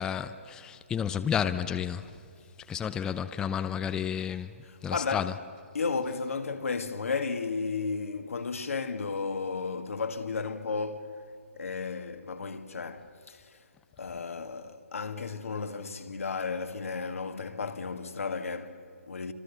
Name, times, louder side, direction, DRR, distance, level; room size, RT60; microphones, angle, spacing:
voice 1, 0.0-2.1 2.7-4.5 4.8-5.3, left 8 dB, 10° left, 0.5 m, -31 dB
voice 2, 4.6-5.3 5.7-13.7 14.0-19.3, left 4 dB, 75° left, 1.9 m, -34 dB
28.5 x 26.0 x 6.9 m
hypercardioid pair, 150°, 7 cm